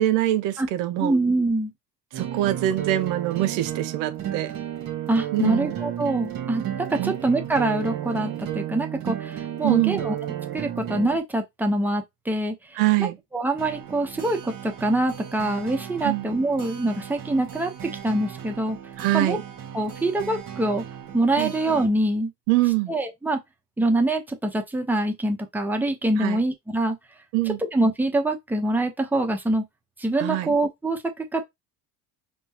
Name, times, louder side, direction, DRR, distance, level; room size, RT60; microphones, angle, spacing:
voice 1, 0.0-1.1 2.1-4.5 5.3-5.8 7.0-7.1 9.6-10.1 12.8-13.2 16.0-16.3 19.0-19.4 21.4-21.5 22.5-22.9 26.2-26.4 27.3-27.6 30.2-30.5, right 15 dB, 75° right, 0.7 m, -24 dB
voice 2, 1.0-1.7 5.1-10.2 10.5-18.8 19.1-19.4 19.7-20.8 21.1-22.3 22.9-23.4 23.8-27.0 27.7-29.6 30.0-31.4, right 2 dB, 5° right, 0.8 m, -25 dB
sound 1, 2.1-11.2 13.6-21.9, right 10 dB, 50° right, 1.5 m, -34 dB
4.4 x 2.3 x 2.9 m
supercardioid pair, 90°, 42 cm